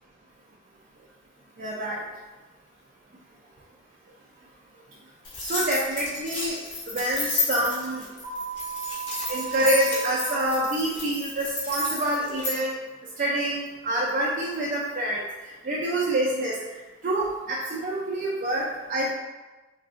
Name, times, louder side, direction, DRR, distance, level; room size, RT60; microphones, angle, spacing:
voice 1, 1.6-2.0 5.4-6.6 6.9-8.0 9.3-12.8 13.2-15.2 15.6-16.6 17.0-19.1, right 1 dB, 45° right, -4 dB, 0.4 m, -26 dB
sound 1, 5.2-12.6, left 3 dB, 65° left, 1.0 m, -32 dB
sound 2, 8.2-10.2, right 8 dB, 20° left, 0.6 m, -34 dB
3.7 x 2.4 x 2.4 m, 1.2 s
head